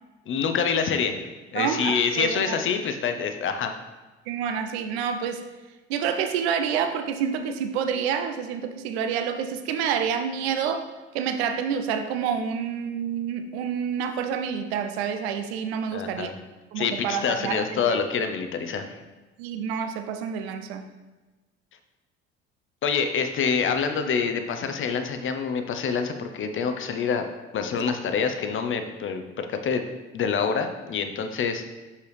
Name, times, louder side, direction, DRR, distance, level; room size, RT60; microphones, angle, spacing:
voice 1, 0.3-1.2 1.5-3.7 15.9-16.3 16.8-19.0 22.8-27.3 27.5-29.8 30.1-31.7, left 6 dB, 35° left, 7 dB, 0.7 m, -26 dB
voice 2, 1.5-2.6 4.3-5.4 5.9-10.9 11.1-16.3 16.7-18.0 19.4-20.9 27.8-27.9, right 7 dB, 65° right, 8 dB, 0.7 m, -28 dB
6.3 x 5.5 x 3.3 m, 1.2 s
figure-of-eight pair, 55°, 34 cm